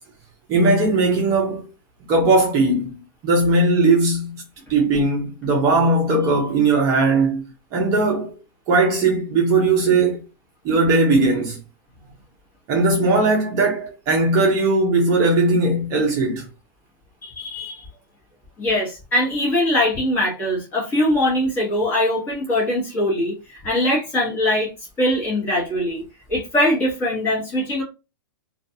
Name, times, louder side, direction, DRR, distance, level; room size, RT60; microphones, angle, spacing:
voice 1, 0.5-1.7 2.1-2.9 3.2-4.4 4.7-7.4 7.7-8.3 8.7-10.2 10.6-11.6 12.7-16.5, right 2 dB, 25° right, 0.6 m, -18 dB
voice 2, 17.2-17.9 18.6-24.7 25.0-26.0 26.3-27.8, left 1 dB, 15° left, 1.1 m, -22 dB
2.4 x 2.3 x 2.7 m
hypercardioid pair, 155°, 12 cm